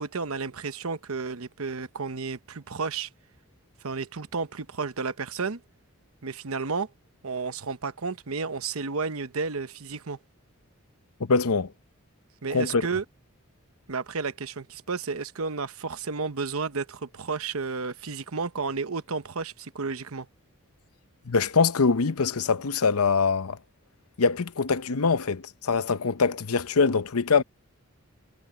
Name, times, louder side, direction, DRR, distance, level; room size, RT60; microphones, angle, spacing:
voice 1, 0.0-3.1 3.8-5.6 6.2-6.9 7.2-10.2 12.4-13.0 13.9-20.3, right 4 dB, 80° right, 0.9 m, -32 dB
voice 2, 11.2-11.7 12.5-12.8 21.3-23.6 24.2-27.4, left 4 dB, 90° left, 0.8 m, -23 dB
head